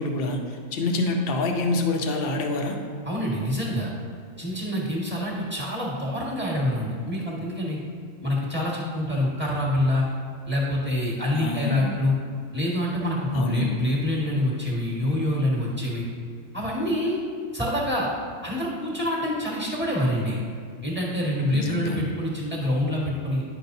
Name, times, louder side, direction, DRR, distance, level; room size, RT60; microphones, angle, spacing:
voice 1, 0.0-2.8 11.4-11.9 13.3-13.7 21.5-22.0, left 2 dB, 50° left, 3 dB, 0.9 m, -26 dB
voice 2, 3.0-3.9 4.4-7.8 8.2-10.1 10.5-12.1 12.5-16.1 16.5-17.2 17.5-18.1 18.4-20.4 20.8-23.4, left 1 dB, 10° right, -6 dB, 1.4 m, -26 dB
9.7 x 6.0 x 2.7 m, 2.3 s
omnidirectional pair, 1.4 m